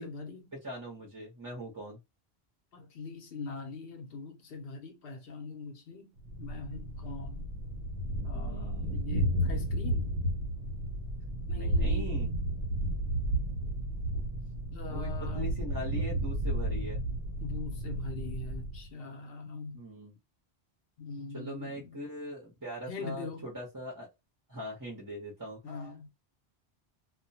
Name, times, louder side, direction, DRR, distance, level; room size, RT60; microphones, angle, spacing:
voice 1, 0.0-0.5 2.7-6.1 6.4-7.5 8.2-10.1 11.5-12.3 14.7-15.6 17.4-19.8 21.0-22.0 22.9-23.5 25.6-26.1, left 4 dB, 70° left, 0.9 m, -42 dB
voice 2, 0.5-2.0 8.3-9.0 11.5-12.3 12.7-12.8 14.1-14.3 14.9-17.0 19.7-20.1 21.3-24.1 24.5-25.6, equal, 20° right, 0.8 m, -41 dB
Thunder, 6.2-18.9, right 1 dB, 70° right, 0.9 m, -32 dB
2.3 x 2.3 x 2.7 m
omnidirectional pair, 1.1 m